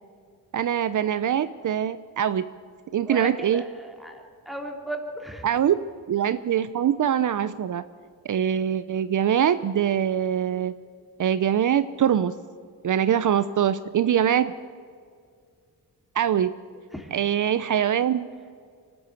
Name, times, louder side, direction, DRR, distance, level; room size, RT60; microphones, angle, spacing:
voice 1, 0.5-2.4 2.9-3.6 5.4-5.8 6.1-7.8 8.2-10.7 11.2-12.3 12.8-14.5 16.1-16.5 17.1-18.3, right 9 dB, 60° right, 13 dB, 0.7 m, -23 dB
voice 2, 3.0-5.5 16.9-17.1, equal, ahead, 2 dB, 3.3 m, -36 dB
25.0 x 12.5 x 8.3 m, 2.1 s
cardioid pair, 85°, 35 cm